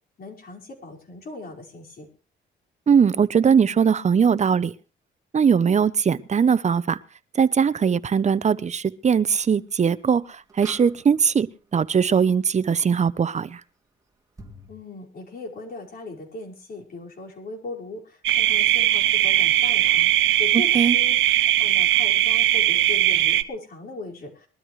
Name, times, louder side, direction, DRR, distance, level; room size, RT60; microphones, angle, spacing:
voice 1, 0.2-2.1 14.7-24.5, left 3 dB, 50° left, -1 dB, 5.2 m, -39 dB
voice 2, 2.9-4.7 5.3-7.0 7.3-13.6 20.5-21.0, right 6 dB, 35° right, 16 dB, 0.8 m, -20 dB
sound 1, 9.4-9.5 10.5-11.5 14.4-14.7, right 2 dB, 15° right, 2.7 m, -44 dB
sound 2, 18.2-23.4, right 13 dB, 75° right, 0.9 m, -19 dB
22.0 x 13.0 x 3.2 m, 0.34 s
cardioid pair, 90°, 20 cm